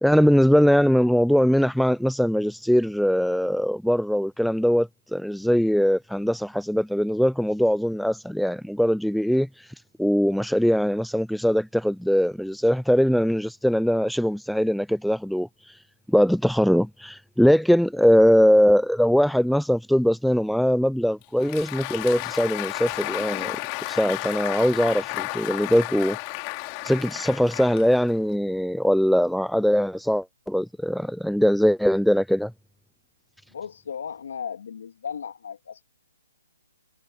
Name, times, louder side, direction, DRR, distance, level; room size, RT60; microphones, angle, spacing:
voice 1, 0.0-9.5 10.0-15.5 16.1-23.6 23.9-26.2 26.8-32.5, equal, ahead, 0.4 m, -21 dB
Applause, 21.2-28.3, left 28 dB, 30° left, 2.9 m, -32 dB
voice 2, 33.5-35.8, left 7 dB, 65° left, 2.9 m, -35 dB
hypercardioid pair, 150°, 0 cm